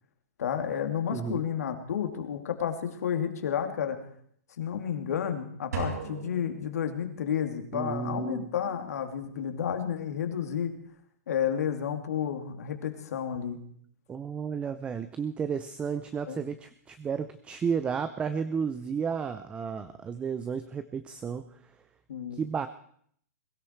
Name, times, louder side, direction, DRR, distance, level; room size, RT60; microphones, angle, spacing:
voice 1, 0.4-4.0 4.6-10.8 11.3-13.6 16.3-16.4 22.1-22.4, left 8 dB, 75° left, 6 dB, 2.8 m, -31 dB
voice 2, 1.1-1.4 7.7-8.5 14.1-21.6 22.3-22.7, right 6 dB, 15° right, 11 dB, 0.5 m, -32 dB
sound 1, 5.7-7.5, right 5 dB, 90° right, 5.5 m, -38 dB
22.0 x 13.0 x 4.6 m, 0.63 s
hypercardioid pair, 150°, 9 cm